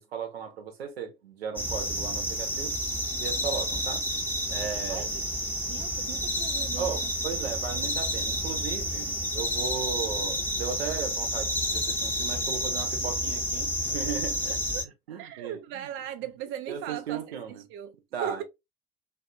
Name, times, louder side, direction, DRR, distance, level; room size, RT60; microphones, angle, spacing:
voice 1, 0.0-2.7 3.2-4.1 4.5-5.1 6.8-14.6 15.1-15.9 16.7-17.6 18.1-18.4, right 7 dB, 75° right, 0.7 m, -36 dB
sound 1, 1.6-14.8, equal, 5° left, 0.7 m, -30 dB
voice 2, 4.9-5.2 5.7-7.1 13.3-13.4 14.5-14.8 15.2-17.4 17.7-17.9 18.2-18.4, right 10 dB, 40° right, 0.4 m, -38 dB
2.4 x 2.4 x 2.6 m
figure-of-eight pair, 60°, 31 cm